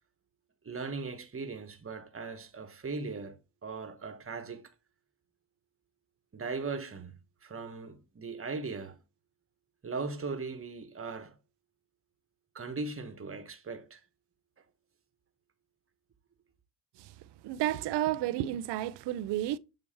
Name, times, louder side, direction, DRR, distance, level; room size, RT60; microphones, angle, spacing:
voice 1, 0.6-4.7 6.3-9.0 9.8-11.4 12.5-14.0, right 4 dB, 30° right, 1.3 m, -39 dB
voice 2, 17.4-19.6, right 13 dB, 60° right, 0.6 m, -31 dB
7.2 x 3.0 x 4.4 m
hypercardioid pair, 55°, 46 cm